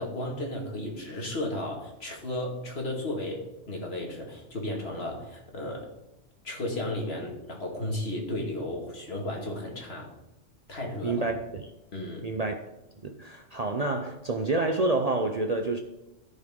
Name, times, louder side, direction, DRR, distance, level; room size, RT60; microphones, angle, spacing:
voice 1, 0.0-5.9 6.4-10.1 10.7-11.2 11.9-12.3, left 1 dB, 55° left, 2.3 m, -34 dB
voice 2, 11.0-11.6 12.2-12.5 13.0-15.8, right 3 dB, 40° right, 0.7 m, -28 dB
15.0 x 5.4 x 3.7 m
omnidirectional pair, 1.3 m